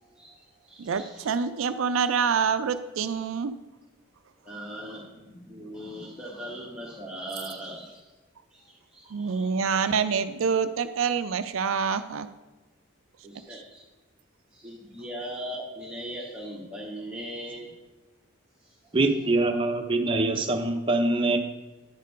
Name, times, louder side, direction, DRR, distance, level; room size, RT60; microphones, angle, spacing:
voice 1, 0.0-1.4 4.4-8.0 8.5-9.5 13.2-13.8 14.5-17.7 18.6-19.0, equal, 5° right, -6 dB, 1.1 m, -40 dB
voice 2, 0.8-3.5 9.1-12.3, right 6 dB, 75° right, 11 dB, 0.4 m, -26 dB
voice 3, 18.9-21.4, right 2 dB, 25° right, 4 dB, 0.7 m, -24 dB
10.0 x 4.3 x 5.1 m, 1.1 s
head